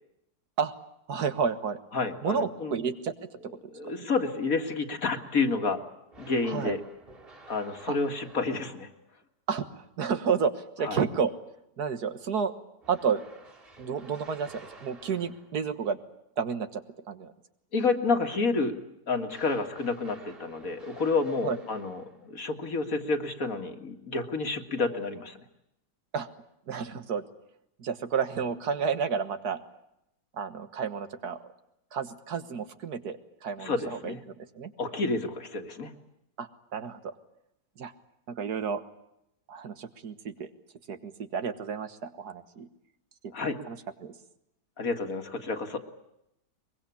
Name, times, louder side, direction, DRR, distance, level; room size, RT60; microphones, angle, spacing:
voice 1, 1.1-1.8 2.2-3.5 6.4-6.8 7.9-8.0 9.5-11.3 11.8-12.5 12.9-13.2 13.8-16.0 16.4-17.3 21.4-21.6 26.1-26.3 26.7-27.2 27.8-29.6 30.3-31.5 31.9-34.7 36.4-37.2 37.8-37.9 38.3-38.8 39.5-40.5 40.9-42.7 43.2-43.3 43.7-44.1, right 6 dB, 70° right, 10 dB, 1.9 m, -31 dB
voice 2, 1.9-2.8 3.7-5.8 6.2-6.8 7.5-8.9 10.8-11.0 17.7-18.8 19.1-25.4 33.6-34.2 34.8-35.9 43.3-43.6 44.8-45.8, left 4 dB, 55° left, 6 dB, 2.3 m, -29 dB
sound 1, 6.1-9.1 12.8-15.7 19.3-22.4, right 3 dB, 35° right, 3.8 m, -52 dB
23.0 x 22.0 x 8.4 m, 0.82 s
omnidirectional pair, 1.7 m